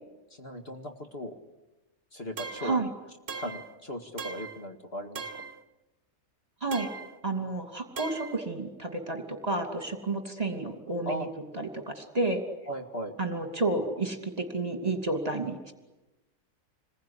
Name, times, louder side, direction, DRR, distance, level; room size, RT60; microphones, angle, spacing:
voice 1, 0.4-1.4 2.1-2.8 3.3-5.2 11.1-11.3 12.7-13.2, equal, 40° left, 3 dB, 2.2 m, -37 dB
sound 1, 2.4-2.8 3.3-3.7 4.2-4.6 5.1-5.6 6.7-7.2 8.0-8.4, right 5 dB, 45° right, 1.4 m, -39 dB
voice 2, 7.2-11.3 11.5-12.4 13.2-15.7, right 2 dB, 25° right, 4 dB, 2.9 m, -31 dB
28.0 x 21.5 x 9.8 m, 1.1 s
omnidirectional pair, 1.7 m